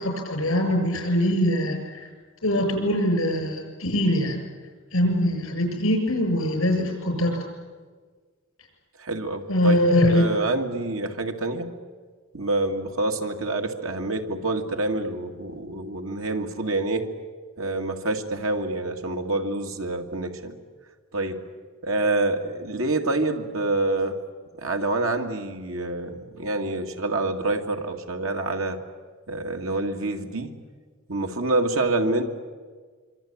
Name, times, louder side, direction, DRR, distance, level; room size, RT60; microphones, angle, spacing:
voice 1, 0.0-2.1 2.4-4.4 4.9-7.5 9.5-10.2, equal, 75° left, 4 dB, 7.2 m, -23 dB
voice 2, 9.0-9.8 10.1-11.7 12.3-17.1 17.6-20.5 21.1-21.4 21.8-24.2 24.6-28.8 29.3-30.5 31.1-32.2, right 2 dB, 75° right, 4 dB, 2.4 m, -27 dB
25.5 x 25.0 x 8.8 m, 1.5 s
head